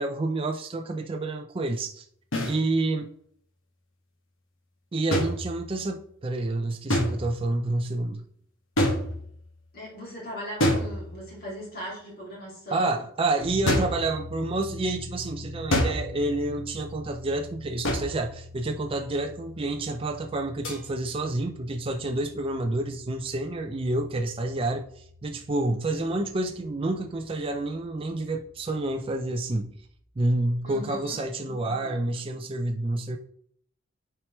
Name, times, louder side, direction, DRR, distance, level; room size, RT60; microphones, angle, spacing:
voice 1, 0.0-2.1 2.5-3.1 4.9-8.2 12.7-29.7 30.2-33.2, right 2 dB, 25° right, 0.4 m, -29 dB
sound 1, 2.3-2.6 5.1-5.9 6.9-7.5 8.8-9.5 10.6-11.4 13.7-14.1 15.7-16.2 17.8-18.3 20.6-20.8, left 1 dB, 65° left, 1.6 m, -27 dB
voice 2, 9.7-13.0 30.6-32.0, equal, 45° left, 2.6 m, -39 dB
sound 2, 13.4-29.8, left 1 dB, 80° left, 2.1 m, -45 dB
8.8 x 4.7 x 3.1 m
head